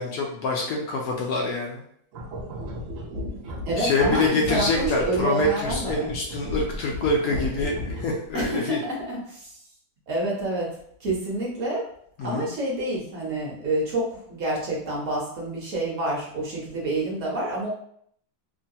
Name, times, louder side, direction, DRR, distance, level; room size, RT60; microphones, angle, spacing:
voice 1, 0.0-1.8 3.8-8.8 12.2-12.5, left 2 dB, 75° left, -1 dB, 0.8 m, -25 dB
sound 1, 2.1-8.3, left 1 dB, 75° right, 0.7 m, -34 dB
voice 2, 3.6-6.1 8.3-9.5 10.1-10.7 11.0-11.8 12.2-17.7, right 1 dB, 55° right, -4 dB, 1.0 m, -28 dB
3.1 x 2.2 x 2.6 m, 0.66 s
omnidirectional pair, 2.1 m